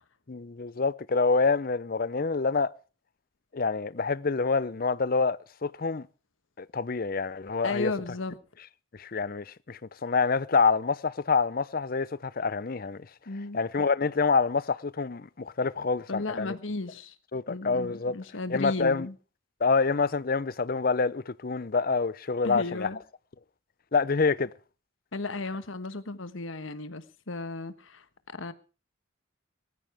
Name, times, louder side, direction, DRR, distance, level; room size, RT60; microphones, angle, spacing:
voice 1, 0.3-2.7 3.5-6.1 6.6-7.9 8.9-13.1 13.5-16.5 17.3-18.1 18.5-19.1 19.6-22.9 23.9-24.5, left 4 dB, 45° left, 0.6 m, -27 dB
voice 2, 7.6-8.4 13.3-13.6 16.1-17.1 17.5-19.1 22.4-23.0 25.1-28.0 28.3-28.5, left 3 dB, 80° left, 1.4 m, -34 dB
19.0 x 14.5 x 3.4 m
head